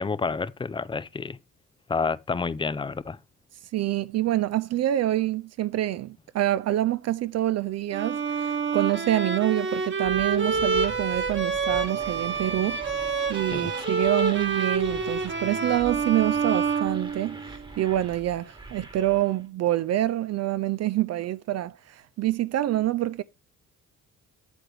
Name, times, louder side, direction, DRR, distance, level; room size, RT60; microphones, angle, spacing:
voice 1, 0.0-1.4 1.9-3.2 13.5-13.7, left 4 dB, 15° left, 0.4 m, -29 dB
voice 2, 3.7-12.8 13.3-23.2, right 14 dB, 60° right, 0.4 m, -26 dB
Bowed string instrument, 7.9-17.6, right 5 dB, 40° right, 1.4 m, -28 dB
sound 1, 10.0-19.4, right 2 dB, 15° right, 1.3 m, -43 dB
8.2 x 7.6 x 3.3 m
cardioid pair, 90°, 30 cm